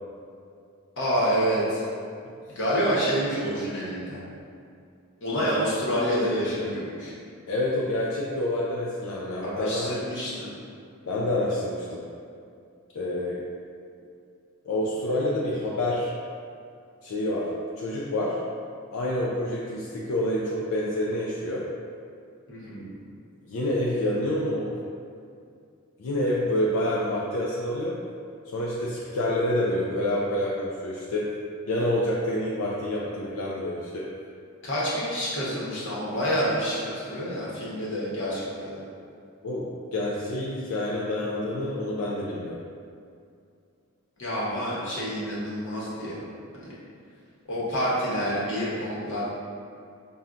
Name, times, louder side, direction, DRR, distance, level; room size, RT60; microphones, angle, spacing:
voice 1, 1.0-1.8 2.5-4.2 5.2-7.1 9.4-10.5 22.5-23.0 34.6-38.8 44.2-46.2 46.5-46.7 47.5-49.2, equal, 55° left, -7 dB, 1.0 m, -28 dB
voice 2, 7.5-9.9 11.1-12.0 13.0-13.4 14.7-16.1 17.0-18.4 18.9-21.7 23.5-24.8 26.0-28.0 28.5-31.4 31.7-34.1 39.4-42.6, left 1 dB, 75° left, -5 dB, 0.4 m, -28 dB
5.6 x 2.3 x 2.5 m, 2.4 s
head